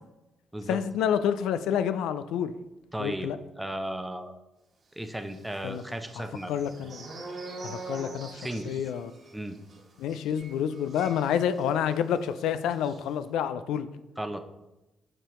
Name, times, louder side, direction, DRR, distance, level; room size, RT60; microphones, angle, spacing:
voice 1, 0.7-2.5 3.0-3.4 5.6-5.8 6.2-7.1 7.6-8.3 8.6-9.1 10.0-13.9, left 9 dB, 85° left, 12 dB, 0.3 m, -28 dB
voice 2, 2.9-3.3 3.6-4.3 5.0-6.5 8.3-8.7 9.3-9.6 14.2-14.4, right 1 dB, 5° right, 7 dB, 0.6 m, -35 dB
sound 1, 5.2-12.0 12.2-12.4 12.7-13.0, right 3 dB, 45° right, 1.4 m, -44 dB
7.4 x 4.9 x 3.1 m, 0.99 s
cardioid pair, 90°, 0 cm